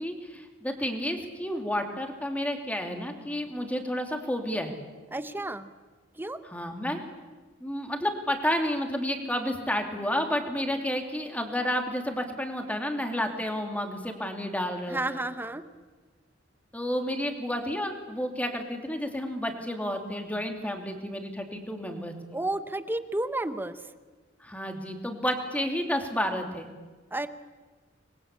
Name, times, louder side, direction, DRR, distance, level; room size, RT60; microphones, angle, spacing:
voice 1, 0.0-4.8 6.5-7.0 7.6-15.2 16.7-22.1 24.4-26.7, equal, 10° left, 4 dB, 3.0 m, -31 dB
voice 2, 5.1-5.7 6.1-6.4 14.9-15.6 22.3-23.8 27.1-27.3, right 2 dB, 10° right, 11 dB, 0.9 m, -31 dB
26.5 x 21.0 x 8.6 m, 1.3 s
head